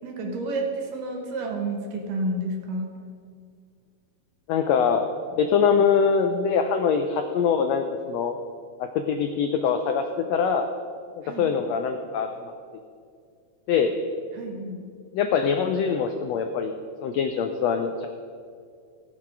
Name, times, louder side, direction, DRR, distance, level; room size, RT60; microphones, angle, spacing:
voice 1, 0.0-2.9 11.2-11.5 14.3-14.8, right 2 dB, 85° right, 1 dB, 2.9 m, -30 dB
voice 2, 4.5-5.0 5.4-8.3 8.8-10.7 11.4-12.5 13.7-13.9 15.1-16.7 17.0-18.1, left 6 dB, 85° left, 6 dB, 1.5 m, -23 dB
16.0 x 6.6 x 5.9 m, 2.2 s
omnidirectional pair, 3.7 m